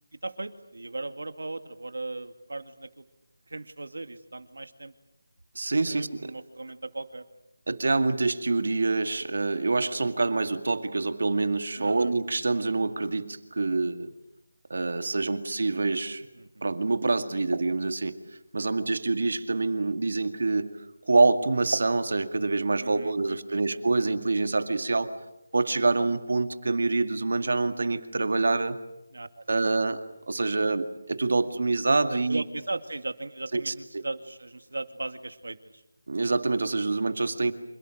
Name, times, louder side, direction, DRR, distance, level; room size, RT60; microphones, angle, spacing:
voice 1, 0.2-3.0 3.5-4.9 5.9-7.3 11.7-12.1 16.4-16.7 22.7-23.8 29.1-29.8 30.4-30.7 32.1-35.8, right 2 dB, 90° right, 9 dB, 2.4 m, -38 dB
voice 2, 5.6-6.3 7.7-14.1 14.7-16.3 16.6-18.2 18.5-20.8 21.0-25.1 25.5-28.8 29.5-30.0 30.3-32.4 33.5-33.7 36.1-37.5, right 3 dB, 50° right, 9 dB, 2.1 m, -26 dB
30.0 x 27.5 x 6.5 m, 0.86 s
figure-of-eight pair, 180°, 0 cm